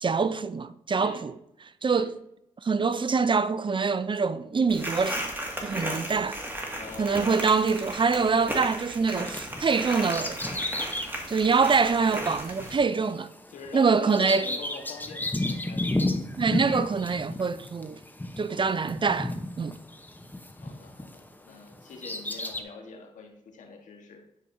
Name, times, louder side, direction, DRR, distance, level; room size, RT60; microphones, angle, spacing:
voice 1, 0.0-1.3 1.8-2.1 2.6-5.3 5.6-6.3 7.0-10.4 11.3-13.3 13.7-14.5 16.4-18.0 18.4-19.3 19.6-19.7, right 5 dB, 40° right, 0.5 m, -25 dB
sound 1, 4.7-12.8, equal, 15° right, 2.0 m, -35 dB
voice 2, 5.7-6.3 6.7-7.3 13.5-16.2 17.3-17.4 18.5-19.0 20.5-24.2, left 4 dB, 75° left, 1.4 m, -45 dB
Bird vocalization bird call bird song, 9.2-21.3 21.7-22.6, left 1 dB, 15° left, 0.9 m, -33 dB
10.5 x 4.8 x 2.7 m
supercardioid pair, 50°, 13 cm